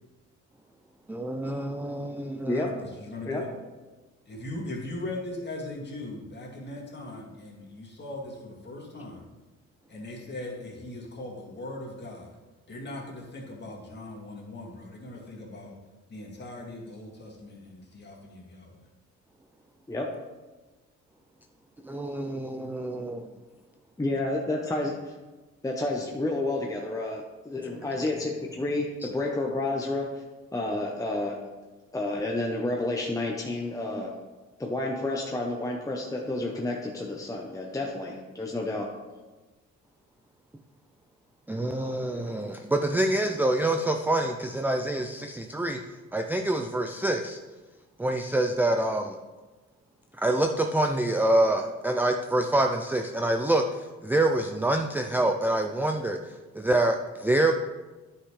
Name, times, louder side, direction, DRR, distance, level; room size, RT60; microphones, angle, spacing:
voice 1, 1.1-2.7 21.8-23.3 27.7-27.9 41.5-45.8 46.1-47.4 48.0-49.2 50.2-57.5, right 1 dB, 5° right, 4 dB, 0.4 m, -26 dB
voice 2, 2.8-3.5 4.3-9.3 9.9-12.4 12.7-15.7 16.1-18.7, left 2 dB, 35° left, -3 dB, 2.3 m, -39 dB
voice 3, 24.0-25.1 25.6-30.2 30.5-31.4 31.9-34.1 34.6-38.9, left 2 dB, 10° left, -1 dB, 0.8 m, -30 dB
9.9 x 5.6 x 3.3 m, 1.2 s
cardioid pair, 90°, 30 cm